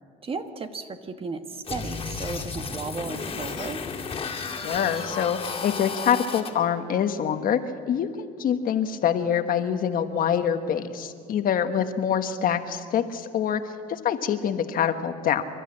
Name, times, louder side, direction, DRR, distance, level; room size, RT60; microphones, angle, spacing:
voice 1, 0.2-3.8, right 4 dB, 35° right, 7 dB, 1.3 m, -34 dB
sound 1, 1.7-6.5, left 5 dB, 35° left, 2.3 m, -33 dB
voice 2, 4.6-7.6 7.9-15.4, left 8 dB, 55° left, 8 dB, 1.3 m, -25 dB
27.0 x 12.5 x 8.7 m, 2.2 s
cardioid pair, 110°, 17 cm